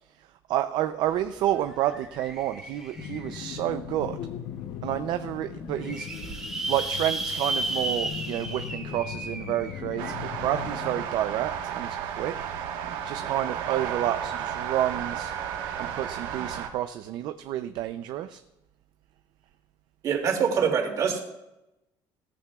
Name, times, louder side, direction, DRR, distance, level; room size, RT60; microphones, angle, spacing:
voice 1, 0.5-4.2 4.8-6.1 6.7-12.4 13.0-15.3 15.8-18.4, right 12 dB, 60° right, 9 dB, 0.5 m, -29 dB
sound 1, 1.1-1.2 1.4-3.6 4.2-4.3 4.6-4.7 4.9-5.0 5.5-10.1, right 2 dB, 5° right, 1.6 m, -34 dB
sound 2, 3.0-11.0, left 9 dB, 60° left, 0.8 m, -39 dB
sound 3, 10.0-16.7, right 8 dB, 80° right, 1.3 m, -33 dB
voice 2, 20.0-21.2, right 7 dB, 45° right, 1 dB, 2.5 m, -24 dB
17.5 x 14.0 x 2.4 m, 0.94 s
cardioid pair, 170°, 8 cm